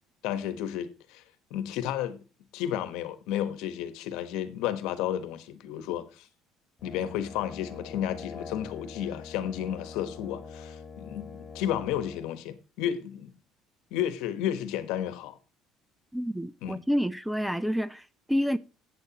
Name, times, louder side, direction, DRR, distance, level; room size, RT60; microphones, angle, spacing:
voice 1, 0.2-1.2 1.5-2.2 2.5-6.3 6.8-13.3 13.9-15.4 16.6-16.8, left 10 dB, 80° left, 1.2 m, -32 dB
Brass instrument, 6.8-12.3, left 5 dB, 20° left, 4.1 m, -44 dB
voice 2, 16.1-18.6, equal, 5° right, 0.6 m, -29 dB
16.0 x 7.8 x 3.0 m
supercardioid pair, 95°, 0 cm